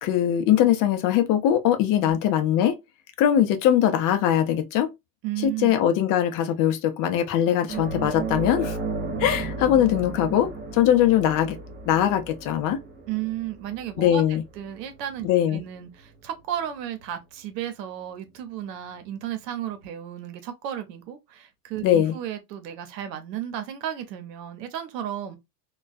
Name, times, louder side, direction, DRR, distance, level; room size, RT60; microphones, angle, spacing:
voice 1, 0.0-2.8 3.2-4.9 5.4-8.8 9.2-11.6 11.9-12.8 14.0-14.4 15.2-15.6 21.8-22.2, left 10 dB, 45° left, 0.6 m, -21 dB
voice 2, 5.2-5.7 13.1-25.4, right 11 dB, 85° right, 0.8 m, -34 dB
sound 1, 7.7-16.6 17.0-17.1 19.2-19.3, right 3 dB, 25° right, 1.1 m, -35 dB
2.3 x 2.2 x 2.4 m
supercardioid pair, 125°, 48 cm